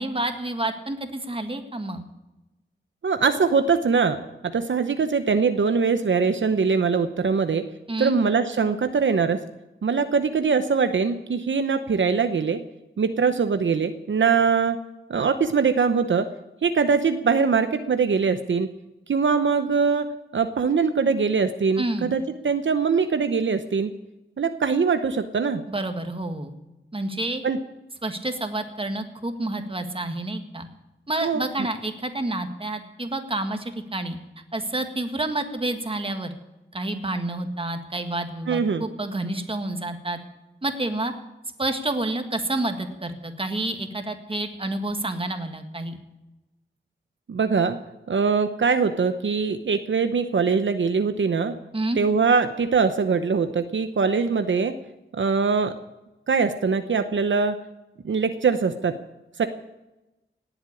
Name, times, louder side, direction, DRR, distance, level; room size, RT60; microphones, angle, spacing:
voice 1, 0.0-2.0 7.9-8.2 21.8-22.1 25.7-26.5 26.9-27.4 28.0-30.7 31.1-34.2 34.5-36.3 36.7-40.2 40.6-41.1 41.6-46.0 51.7-52.0, right 2 dB, 30° right, 6 dB, 1.8 m, -29 dB
voice 2, 3.0-4.2 4.5-7.6 8.0-9.4 9.8-12.6 13.0-14.8 15.1-16.3 16.6-18.7 19.1-20.1 20.3-23.9 24.4-25.6 27.4-27.6 31.2-31.4 38.5-38.8 47.3-47.8 48.1-51.5 52.0-54.7 55.1-55.7 56.3-57.6 58.0-59.0 59.4-59.5, right 5 dB, 75° right, 9 dB, 0.9 m, -22 dB
18.0 x 8.1 x 8.5 m, 1.0 s
wide cardioid pair, 85°, 20 cm